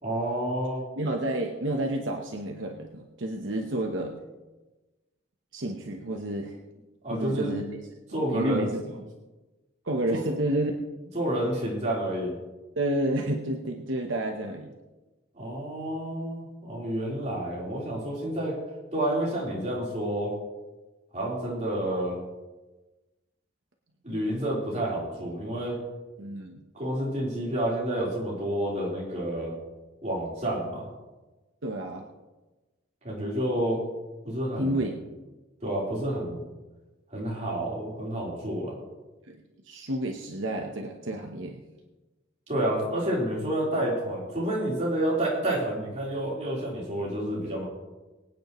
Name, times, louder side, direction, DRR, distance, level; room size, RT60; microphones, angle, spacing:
voice 1, 0.0-0.8 7.0-7.6 8.1-8.7 10.1-10.2 11.1-12.3 15.4-18.6 18.9-20.3 21.1-22.2 24.0-25.8 26.7-29.6 30.0-30.9 33.0-33.8 34.2-34.8 35.6-36.4 37.1-38.8 42.5-47.6, right 1 dB, 35° right, -5 dB, 3.9 m, -29 dB
voice 2, 1.0-4.1 5.5-6.6 7.1-7.7 8.1-9.1 9.8-10.7 12.8-14.7 26.2-26.6 31.6-32.1 34.6-35.1 39.3-41.6, right 1 dB, 70° right, 2 dB, 1.0 m, -30 dB
23.5 x 9.2 x 3.1 m, 1.1 s
head